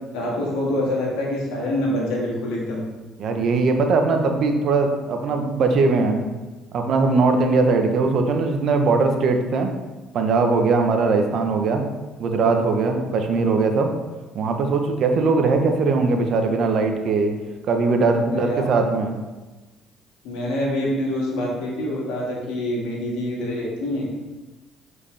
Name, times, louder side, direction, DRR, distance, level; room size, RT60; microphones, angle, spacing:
voice 1, 0.1-2.8 18.2-18.7 20.2-24.2, left 1 dB, 80° left, -3 dB, 1.9 m, -26 dB
voice 2, 3.2-6.4 6.7-9.7 10.1-11.9 12.2-13.9 14.3-17.3 17.7-19.2, right 3 dB, 60° right, 4 dB, 0.9 m, -20 dB
7.4 x 4.8 x 3.4 m, 1.2 s
supercardioid pair, 65°, 0 cm